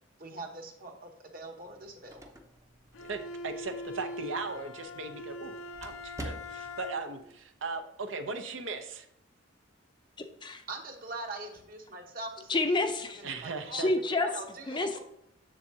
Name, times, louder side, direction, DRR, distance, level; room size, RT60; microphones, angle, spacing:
voice 1, 0.2-2.2 10.7-12.8 13.3-13.9 14.2-14.9, right 2 dB, 45° right, 2 dB, 1.2 m, -42 dB
sound 1, 1.7-6.9, right 1 dB, 15° right, 0.7 m, -48 dB
Bowed string instrument, 2.9-7.3, left 1 dB, 75° left, 0.6 m, -42 dB
voice 2, 3.4-5.6 5.8-9.1 13.2-13.9, right 3 dB, 65° right, 6 dB, 0.7 m, -38 dB
voice 3, 12.5-13.2 13.7-14.3 14.7-15.0, left 2 dB, 20° left, 7 dB, 0.5 m, -28 dB
7.2 x 7.1 x 2.8 m, 0.79 s
head